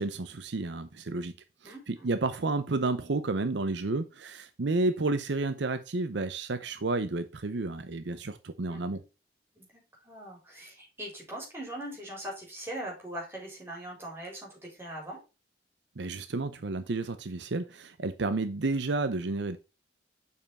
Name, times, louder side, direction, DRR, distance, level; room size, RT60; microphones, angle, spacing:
voice 1, 0.0-1.3 1.6-9.0 16.0-19.6, right 3 dB, 70° right, 0.7 m, -31 dB
voice 2, 1.6-2.1 8.7-9.0 9.5-15.2, right 1 dB, 10° right, 4.1 m, -41 dB
7.0 x 5.6 x 4.1 m
head